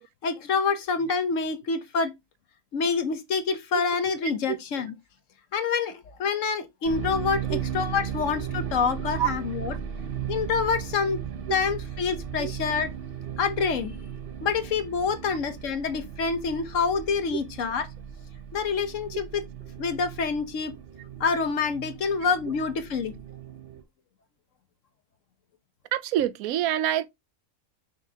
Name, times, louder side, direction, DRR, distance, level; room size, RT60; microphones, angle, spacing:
voice 1, 0.2-2.1 2.7-4.9 5.5-9.7 10.3-11.2 11.5-12.9 13.4-14.0 14.4-17.8 18.5-19.4 19.8-20.7 21.2-23.2, left 5 dB, 65° left, 1.2 m, -27 dB
sound 1, 6.8-23.8, right 8 dB, 45° right, 1.0 m, -36 dB
voice 2, 25.9-27.1, right 12 dB, 80° right, 1.0 m, -26 dB
6.0 x 5.7 x 2.8 m
omnidirectional pair, 1.5 m